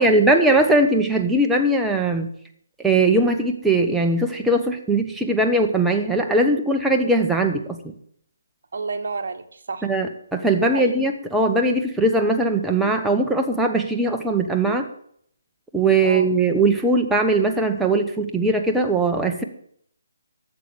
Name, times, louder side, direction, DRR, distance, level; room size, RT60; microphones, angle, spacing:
voice 1, 0.0-2.3 2.8-7.9 9.8-14.9 15.7-19.4, right 2 dB, 5° right, 3 dB, 1.0 m, -20 dB
voice 2, 8.7-9.9 10.6-10.9 16.0-16.3, right 4 dB, 60° right, 6 dB, 1.3 m, -30 dB
12.5 x 7.8 x 7.1 m, 0.67 s
figure-of-eight pair, 150°, 0 cm